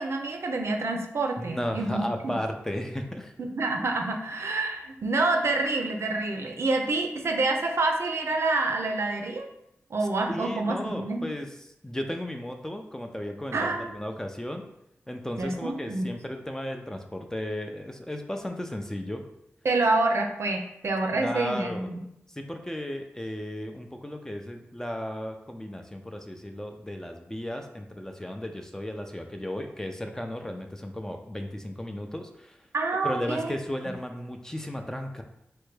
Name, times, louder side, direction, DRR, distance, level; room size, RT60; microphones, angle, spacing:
voice 1, 0.0-2.4 3.4-9.5 9.9-11.3 13.5-13.9 15.4-16.1 19.6-22.0 32.7-33.5, right 2 dB, 65° right, 3 dB, 0.5 m, -27 dB
voice 2, 1.4-3.3 10.3-11.5 11.8-14.6 15.1-19.2 21.1-21.9 22.3-32.6 33.0-35.2, left 1 dB, 10° left, 4 dB, 0.4 m, -35 dB
3.3 x 2.2 x 3.2 m, 0.80 s
cardioid pair, 60°, 5 cm